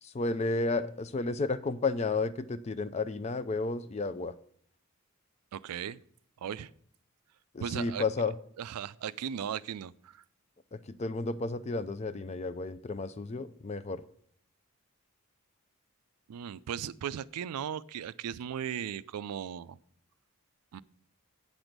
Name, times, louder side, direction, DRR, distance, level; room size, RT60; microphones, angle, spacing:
voice 1, 0.0-4.3 7.5-8.3 10.7-14.0, left 3 dB, 30° left, 14 dB, 0.4 m, -32 dB
voice 2, 5.5-6.0 6.4-6.7 7.6-8.0 8.6-10.2 16.3-19.8 20.7-20.8, right 8 dB, 90° right, 17 dB, 0.4 m, -37 dB
8.8 x 6.1 x 5.1 m, 0.62 s
head